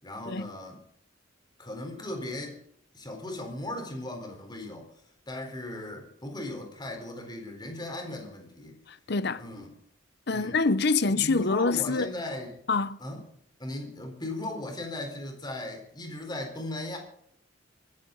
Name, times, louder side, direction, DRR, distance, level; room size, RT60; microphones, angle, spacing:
voice 1, 0.0-0.8 1.6-2.6 2.9-4.9 5.3-8.8 9.4-9.7 10.3-10.6 11.0-12.5 13.0-13.3 13.6-17.0, left 1 dB, 20° left, 4.0 m, -37 dB
voice 2, 8.9-9.4 10.3-12.1 12.7-13.0, left 4 dB, 55° left, 0.7 m, -26 dB
24.5 x 14.0 x 3.9 m
head